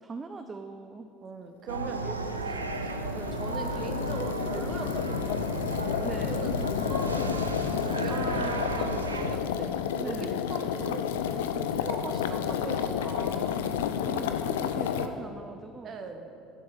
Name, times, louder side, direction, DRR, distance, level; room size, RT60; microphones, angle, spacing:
voice 1, 0.0-1.1 6.0-6.5 8.1-8.9 10.0-10.4 13.0-16.0, right 3 dB, 25° right, 7 dB, 0.6 m, -41 dB
voice 2, 1.2-5.8 6.3-9.7 10.0-13.1 14.1-14.4 15.8-16.3, right 4 dB, 40° right, 6 dB, 1.2 m, -40 dB
sound 1, 1.7-9.4, right 3 dB, 85° right, 0.6 m, -34 dB
sound 2, 1.9-15.1, left 9 dB, 70° left, 0.6 m, -31 dB
9.9 x 7.8 x 7.4 m, 2.7 s
figure-of-eight pair, 65°, 0 cm